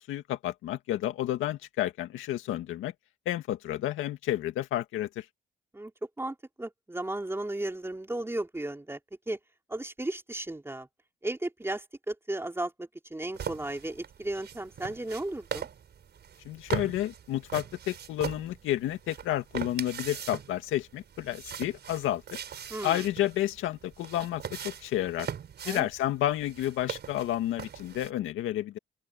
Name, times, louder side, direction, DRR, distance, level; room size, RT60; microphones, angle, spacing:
voice 1, 0.0-2.9 3.3-5.3 16.5-22.2 22.8-25.3 25.6-28.8, left 13 dB, 90° left, 2.1 m, -31 dB
voice 2, 6.2-9.0 9.3-9.4 9.7-10.9 11.2-15.7 22.7-23.0 25.7-25.9, right 1 dB, 10° right, 3.0 m, -35 dB
sound 1, 13.3-28.1, right 8 dB, 55° right, 5.9 m, -41 dB
open air
cardioid pair, 90°, 20 cm